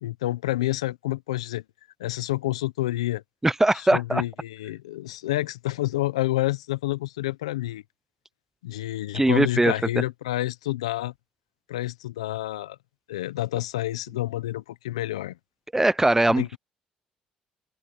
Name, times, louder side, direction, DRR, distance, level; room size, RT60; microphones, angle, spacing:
voice 1, 0.0-1.6 2.0-3.2 3.9-7.8 8.6-11.1 11.7-12.8 13.1-15.4 16.3-16.6, left 16 dB, 85° left, 1.1 m, -28 dB
voice 2, 3.4-4.2 9.1-9.7 15.7-16.6, right 2 dB, 10° right, 0.8 m, -21 dB
open air
hypercardioid pair, 55°, 3 cm